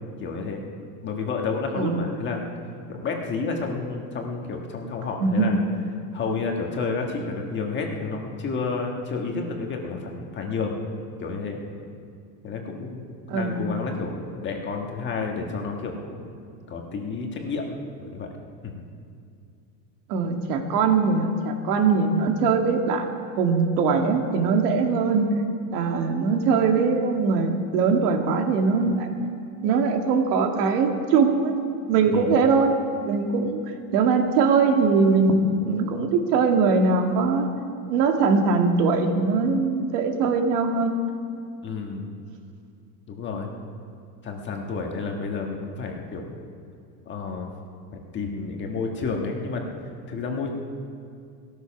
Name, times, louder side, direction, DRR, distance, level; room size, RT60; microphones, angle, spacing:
voice 1, 0.2-0.6 1.0-2.4 2.9-5.6 6.1-10.8 11.2-11.6 12.4-16.3 16.7-17.7 18.0-18.3 18.6-18.8 32.1-32.3 41.6-42.1 43.1-43.5 44.2-46.3 47.0-47.5 47.9-49.8 50.1-50.5, left 4 dB, 20° left, 2 dB, 1.4 m, -30 dB
voice 2, 1.8-2.1 5.2-5.5 13.3-13.6 20.1-25.3 25.7-29.1 29.6-31.5 31.9-32.7 33.0-33.6 33.9-37.5 37.9-41.0, right 4 dB, 65° right, 4 dB, 2.1 m, -21 dB
17.5 x 13.5 x 5.9 m, 2.4 s
supercardioid pair, 165°, 50 cm